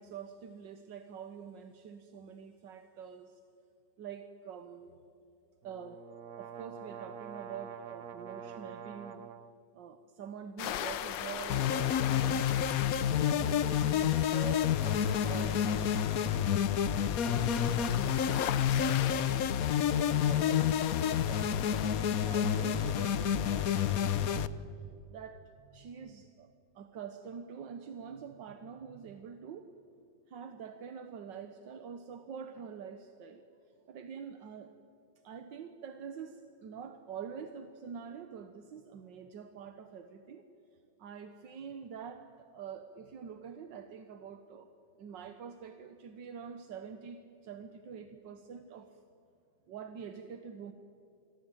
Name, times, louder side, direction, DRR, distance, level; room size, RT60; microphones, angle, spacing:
voice 1, 0.0-3.4 4.0-5.0 5.6-6.0 6.4-9.3 9.7-12.5 12.9-16.6 17.0-19.5 19.8-29.7 30.3-33.4 33.9-34.7 35.2-40.4 41.0-44.7 45.0-49.0 49.7-50.7, right 7 dB, 85° right, 8 dB, 1.8 m, -46 dB
sound 1, 5.6-9.5, right 7 dB, 60° right, 1.4 m, -46 dB
sound 2, 10.6-21.9, left 10 dB, 85° left, 1.6 m, -41 dB
sound 3, 11.5-24.5, left 9 dB, 60° left, 1.1 m, -29 dB
27.5 x 22.5 x 9.0 m, 2.6 s
omnidirectional pair, 1.9 m